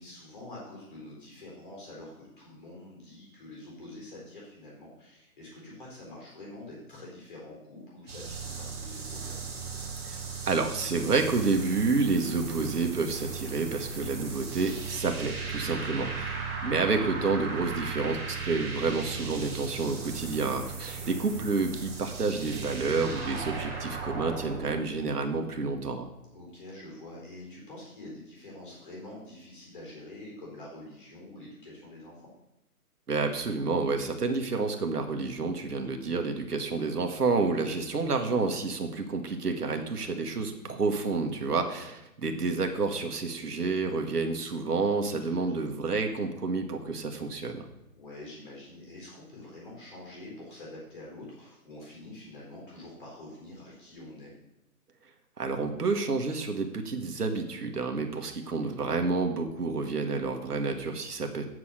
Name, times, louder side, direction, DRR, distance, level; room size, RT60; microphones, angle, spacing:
voice 1, 0.0-9.4 15.8-16.2 20.9-21.3 26.3-32.2 45.2-45.5 47.9-54.3, left 1 dB, 35° left, -3 dB, 4.0 m, -46 dB
sound 1, 8.1-24.8, right 5 dB, 40° right, 1.9 m, -37 dB
voice 2, 10.5-26.1 33.1-47.6 55.4-61.4, right 4 dB, 80° right, 5 dB, 1.6 m, -29 dB
8.2 x 6.1 x 6.5 m, 0.88 s
hypercardioid pair, 175°, 46 cm